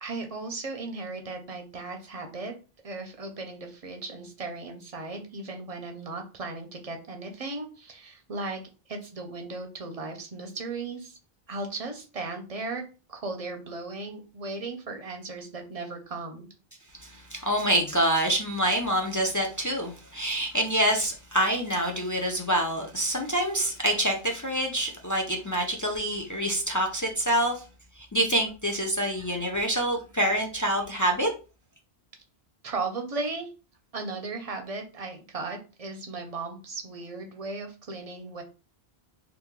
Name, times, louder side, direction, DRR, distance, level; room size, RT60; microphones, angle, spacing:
voice 1, 0.0-2.5 2.8-8.6 8.9-11.2 11.5-12.8 13.1-16.5 32.6-33.5 33.9-38.4, right 3 dB, 45° right, 0.6 m, -36 dB
voice 2, 17.0-27.6 28.1-31.3, right 1 dB, 25° left, 0.4 m, -26 dB
2.9 x 2.6 x 3.6 m
omnidirectional pair, 1.0 m